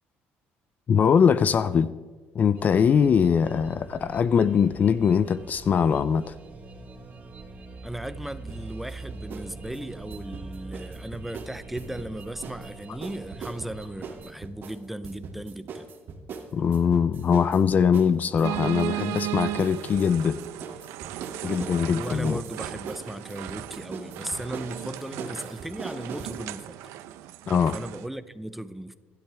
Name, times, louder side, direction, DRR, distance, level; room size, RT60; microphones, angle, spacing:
voice 1, 0.9-1.9 2.3-6.4 16.5-20.4 21.4-22.4 27.5-27.8, left 7 dB, 40° left, 0.4 m, -22 dB
sound 1, 2.6-14.3, right 3 dB, 35° right, 3.3 m, -44 dB
voice 2, 7.8-15.9 21.9-26.8 27.7-28.9, right 1 dB, 5° right, 0.7 m, -36 dB
sound 2, 8.5-9.5 9.7-12.7 13.0-26.4, right 5 dB, 50° right, 2.6 m, -40 dB
sound 3, 18.4-28.1, right 14 dB, 85° right, 0.8 m, -36 dB
26.5 x 12.0 x 3.5 m
cardioid pair, 120°, 5 cm